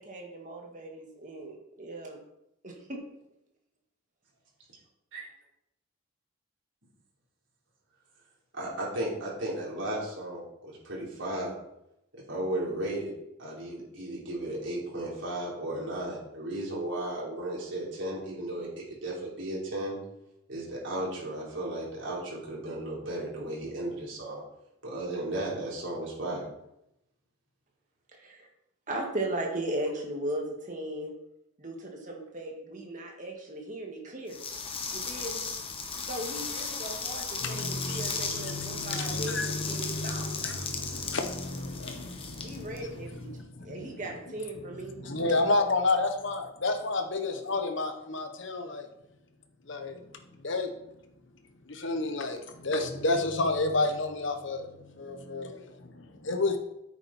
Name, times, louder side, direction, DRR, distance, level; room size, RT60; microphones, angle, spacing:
voice 1, 0.0-2.2 2.6-3.0 28.1-28.5 28.9-31.1 31.6-34.4 34.9-35.4 36.1-40.3 42.4-43.3 43.6-45.0, right 1 dB, 40° right, 1 dB, 2.1 m, -37 dB
voice 2, 8.5-11.5 12.1-13.1 13.4-20.0 20.5-24.4 24.8-26.5, right 1 dB, 65° right, -4 dB, 4.0 m, -35 dB
sound 1, 34.3-43.3, left 5 dB, 25° left, 1.3 m, -36 dB
voice 3, 37.4-44.0 45.0-48.9 49.7-50.1 50.4-50.7 51.7-56.6, left 2 dB, 65° left, 6 dB, 1.2 m, -31 dB
10.0 x 8.8 x 4.4 m, 0.84 s
head